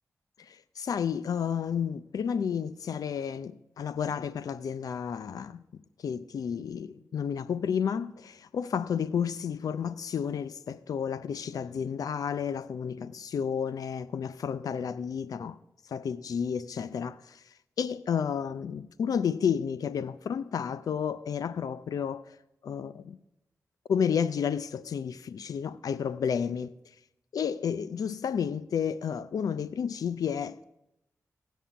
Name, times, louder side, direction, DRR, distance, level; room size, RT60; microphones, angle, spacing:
voice 1, 0.5-5.6 6.0-15.6 15.9-17.4 17.8-22.4 22.6-23.2 23.9-26.7 27.3-30.6, left 7 dB, 80° left, 0.4 m, -31 dB
16.0 x 5.5 x 5.7 m
cardioid pair, 70°, 6 cm